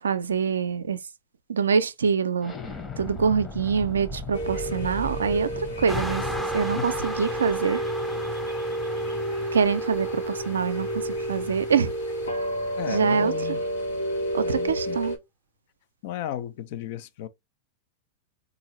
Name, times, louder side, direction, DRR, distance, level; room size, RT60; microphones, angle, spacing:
voice 1, 0.0-1.0 1.5-2.5 3.0-6.2 6.5-7.8 9.5-11.9 12.9-13.3 14.3-15.2, right 6 dB, 85° right, 0.4 m, -25 dB
Explosion, 2.4-7.9, left 1 dB, 20° left, 1.0 m, -38 dB
voice 2, 2.9-3.4 6.8-6.9 12.7-13.6 14.4-15.0 16.0-17.3, left 11 dB, 55° left, 0.5 m, -35 dB
sound 1, 4.3-15.2, right 1 dB, 85° left, 1.4 m, -30 dB
sound 2, 5.9-13.9, left 1 dB, 5° left, 0.6 m, -37 dB
3.8 x 2.6 x 3.0 m
hypercardioid pair, 105°, 0 cm